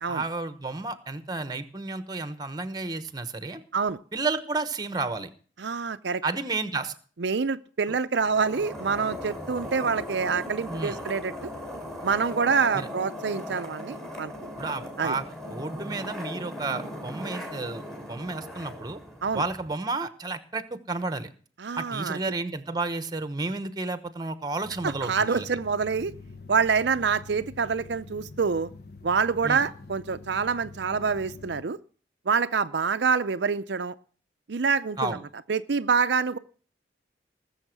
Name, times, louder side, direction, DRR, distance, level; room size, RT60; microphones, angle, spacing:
voice 1, 0.1-3.6 4.1-5.3 6.2-6.9 10.7-11.0 12.7-12.9 14.6-17.8 18.1-19.0 19.3-21.3 21.8-25.5 29.4-29.6 35.0-35.2, right 3 dB, 20° right, 12 dB, 1.1 m, -31 dB
voice 2, 5.6-6.2 7.2-11.5 12.0-14.3 15.0-15.1 19.2-19.4 21.6-22.2 24.8-26.1 26.5-28.7 29.0-31.8 32.3-33.9 34.5-35.2 35.5-36.4, right 5 dB, 70° right, 10 dB, 0.6 m, -26 dB
sound 1, 8.2-19.7, left 1 dB, ahead, 3.2 m, -38 dB
sound 2, 24.6-31.6, left 3 dB, 55° left, 1.0 m, -46 dB
19.5 x 7.2 x 6.0 m, 0.42 s
head